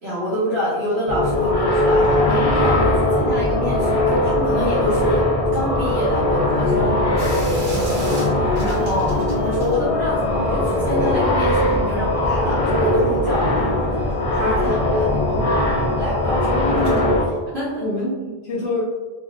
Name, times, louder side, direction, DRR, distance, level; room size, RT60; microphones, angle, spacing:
voice 1, 0.0-15.4 16.0-16.5 17.5-17.9, equal, 80° right, -9 dB, 1.0 m, -26 dB
sound 1, 1.1-17.2, left 1 dB, 50° left, 0.4 m, -20 dB
sound 2, 2.2-8.3, right 1 dB, 15° right, 1.0 m, -38 dB
sound 3, 7.2-9.8 10.1-13.3 13.6-17.4, right 2 dB, 40° right, 0.9 m, -35 dB
voice 2, 16.3-17.2 17.8-18.8, left 1 dB, 85° left, -5 dB, 0.9 m, -26 dB
3.7 x 2.1 x 2.3 m, 1.3 s
omnidirectional pair, 1.0 m